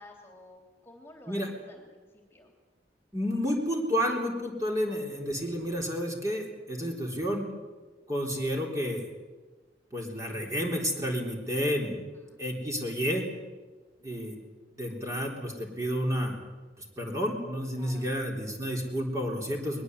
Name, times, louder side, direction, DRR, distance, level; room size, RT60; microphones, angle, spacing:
voice 1, 0.0-2.5 12.1-12.4 17.8-18.1, left 2 dB, 15° left, 2 dB, 3.2 m, -52 dB
voice 2, 3.1-7.5 8.1-9.1 9.9-12.0 12.4-13.3 14.0-14.4 14.8-16.4 16.8-19.8, equal, 20° right, 0 dB, 3.7 m, -30 dB
21.0 x 21.0 x 8.1 m, 1.3 s
head